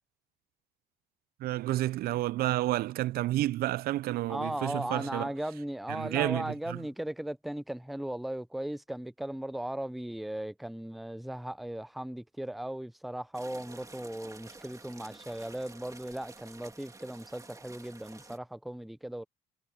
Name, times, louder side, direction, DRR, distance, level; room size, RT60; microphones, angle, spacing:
voice 1, 1.4-5.3 5.9-6.8, right 16 dB, 65° right, 0.4 m, -30 dB
voice 2, 4.3-19.2, right 1 dB, ahead, 0.5 m, -37 dB
sound 1, 13.3-18.4, right 3 dB, 20° right, 2.8 m, -51 dB
cardioid pair, 110°, 17 cm